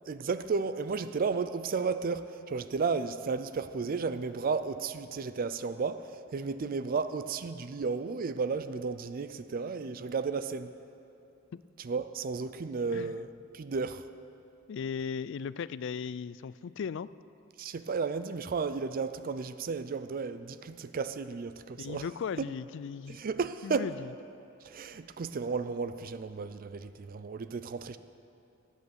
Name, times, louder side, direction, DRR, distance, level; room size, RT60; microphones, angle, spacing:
voice 1, 0.1-10.7 11.8-14.1 17.6-22.1 22.4-22.5 23.1-23.9 24.6-28.0, right 5 dB, 45° right, 0.4 m, -33 dB
voice 2, 14.7-17.1 21.8-23.2 23.6-24.1, left 6 dB, 65° left, 0.4 m, -37 dB
18.0 x 8.3 x 7.0 m
head